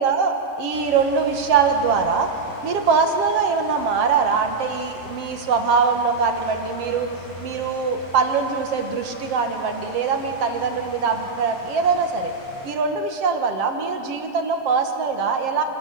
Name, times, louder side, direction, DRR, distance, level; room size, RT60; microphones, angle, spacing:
voice 1, 0.0-2.3 2.6-7.1 7.4-12.3 12.6-15.6, right 5 dB, 60° right, 5 dB, 2.3 m, -22 dB
sound 1, 0.7-12.7, left 2 dB, 70° left, 5.7 m, -41 dB
28.0 x 18.0 x 6.9 m, 2.8 s
omnidirectional pair, 3.4 m